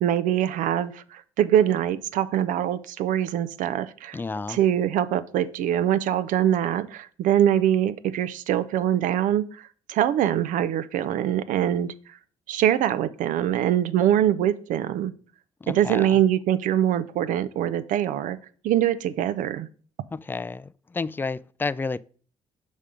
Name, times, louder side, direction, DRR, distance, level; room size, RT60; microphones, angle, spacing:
voice 1, 0.0-4.2 4.5-9.6 9.9-12.2 12.5-15.1 15.7-18.4 18.6-19.7, right 11 dB, 65° right, 0.4 m, -23 dB
voice 2, 4.1-4.6 15.6-16.2 20.1-22.0, left 4 dB, 15° left, 0.3 m, -31 dB
5.5 x 5.1 x 4.9 m
hypercardioid pair, 50°, 14 cm